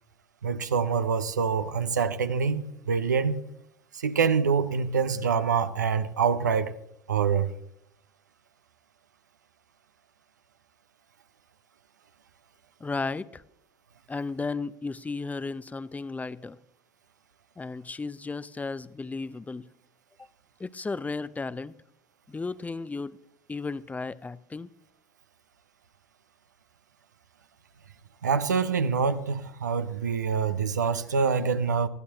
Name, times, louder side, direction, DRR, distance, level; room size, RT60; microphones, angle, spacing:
voice 1, 0.4-3.4 3.9-6.7 7.1-7.5 28.2-31.9, right 6 dB, 90° right, 0.7 m, -25 dB
voice 2, 12.8-13.4 14.1-16.6 17.6-19.7 20.6-21.7 22.3-23.2 23.5-24.7, left 4 dB, 15° left, 0.6 m, -34 dB
20.0 x 14.0 x 2.9 m
hypercardioid pair, 70°, 9 cm